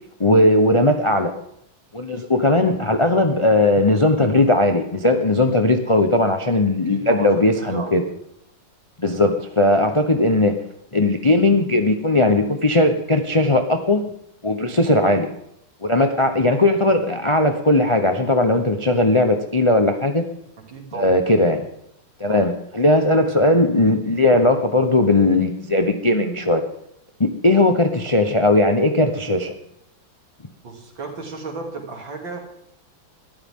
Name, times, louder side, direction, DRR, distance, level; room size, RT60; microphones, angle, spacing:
voice 1, 0.2-1.3 1.9-8.0 9.0-10.6 10.9-14.0 14.4-15.3 15.8-20.3 20.9-21.6 22.2-26.6 27.2-29.5, left 2 dB, 35° left, 6 dB, 0.5 m, -18 dB
voice 2, 6.9-7.3 7.6-8.0 14.7-14.8 20.6-21.2 22.3-22.5 30.6-32.4, right 3 dB, 65° right, 1 dB, 3.5 m, -34 dB
21.0 x 13.5 x 3.7 m, 0.73 s
omnidirectional pair, 2.2 m